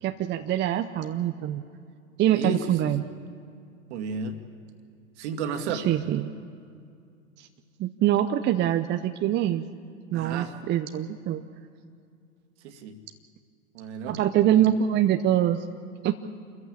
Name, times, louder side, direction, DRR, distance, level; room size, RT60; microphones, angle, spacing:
voice 1, 0.0-1.6 2.2-3.0 5.7-6.3 7.4-7.5 7.8-9.6 10.1-11.4 14.1-15.6 16.0-16.1, right 11 dB, 30° right, 8 dB, 0.8 m, -24 dB
voice 2, 2.3-2.9 3.9-4.4 5.2-6.0 10.1-10.5 12.6-13.0 13.7-14.6, right 5 dB, 60° right, 6 dB, 2.2 m, -33 dB
26.5 x 14.5 x 8.7 m, 2.3 s
hypercardioid pair, 100°, 39 cm